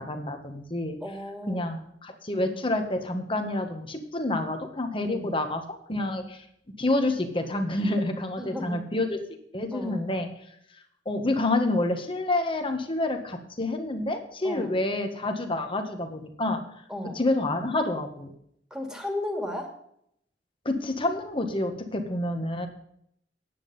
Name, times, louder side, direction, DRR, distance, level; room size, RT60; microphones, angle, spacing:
voice 1, 0.0-1.0 1.5-6.4 6.8-9.2 9.5-10.3 11.0-16.6 17.1-18.3 20.6-22.7, left 2 dB, 30° left, 6 dB, 1.7 m, -28 dB
voice 2, 1.0-1.7 5.0-5.3 8.4-8.8 9.7-10.0 14.4-14.8 16.9-17.2 18.7-19.7, left 1 dB, 5° right, 3 dB, 2.5 m, -34 dB
10.0 x 9.1 x 5.5 m, 0.69 s
head